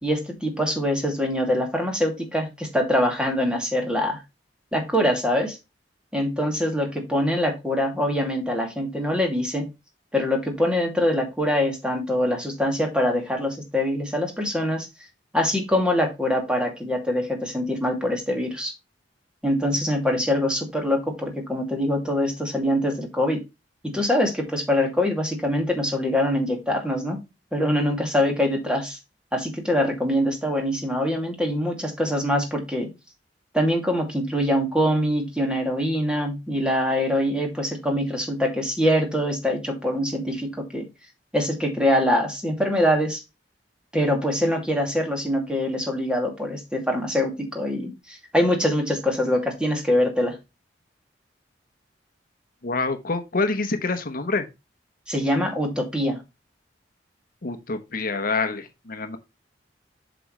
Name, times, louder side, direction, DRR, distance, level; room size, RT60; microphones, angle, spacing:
voice 1, 0.0-4.2 4.7-5.6 6.1-9.7 10.1-14.9 15.3-18.7 19.4-23.4 23.8-27.2 27.5-29.0 29.3-32.9 33.5-40.9 41.3-43.2 43.9-50.4 55.1-56.2, left 1 dB, 5° right, 2.4 m, -24 dB
voice 2, 52.6-54.5 57.4-59.2, left 3 dB, 50° left, 1.0 m, -26 dB
7.7 x 6.1 x 3.2 m
head